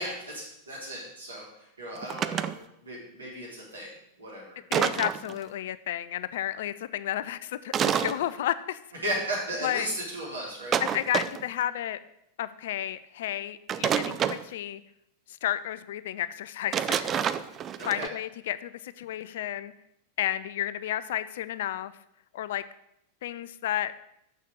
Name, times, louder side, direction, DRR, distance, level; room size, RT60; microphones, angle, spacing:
voice 1, 0.0-2.5 2.8-3.9 4.2-4.6 9.0-10.8 17.8-18.1, right 1 dB, 75° right, -4 dB, 3.6 m, -35 dB
sound 1, 2.0-2.5 4.7-5.4 7.7-8.2 10.7-11.5 13.7-14.4 16.7-18.1, right 9 dB, 25° right, 0.4 m, -28 dB
voice 2, 4.7-8.8 9.6-9.9 10.8-12.0 12.4-14.8 15.4-17.1 17.9-19.7 20.2-21.9 22.3-22.6 23.2-23.9, left 12 dB, 55° left, 14 dB, 0.4 m, -32 dB
6.8 x 6.4 x 6.4 m, 0.80 s
figure-of-eight pair, 90°, 0 cm